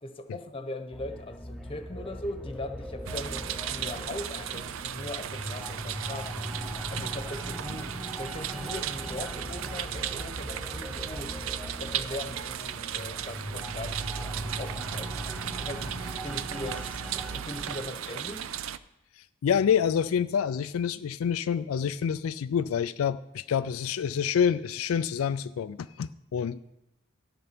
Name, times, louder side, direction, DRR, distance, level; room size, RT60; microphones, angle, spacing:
voice 1, 0.0-6.3 6.9-7.9 8.2-11.3 11.8-15.2 15.6-17.0 17.3-18.5, left 1 dB, 25° left, 7 dB, 1.1 m, -40 dB
sound 1, 0.9-17.9, equal, ahead, 0.6 m, -40 dB
sound 2, 3.0-18.8, right 9 dB, 65° right, 0.5 m, -36 dB
voice 2, 19.2-26.6, left 7 dB, 80° left, 12 dB, 0.4 m, -27 dB
13.0 x 6.7 x 6.0 m, 0.87 s
head